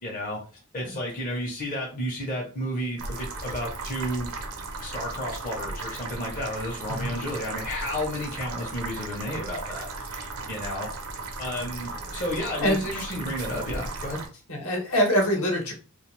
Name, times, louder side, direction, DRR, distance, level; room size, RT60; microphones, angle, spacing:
voice 1, 0.0-0.4 0.7-4.3 4.8-10.9 11.4-14.2, left 1 dB, 40° left, -3 dB, 0.7 m, -32 dB
sound 1, 3.0-14.3, right 3 dB, 80° right, 0.6 m, -36 dB
voice 2, 14.5-15.7, equal, 65° left, 1 dB, 0.9 m, -25 dB
2.4 x 2.2 x 3.1 m, 0.35 s
head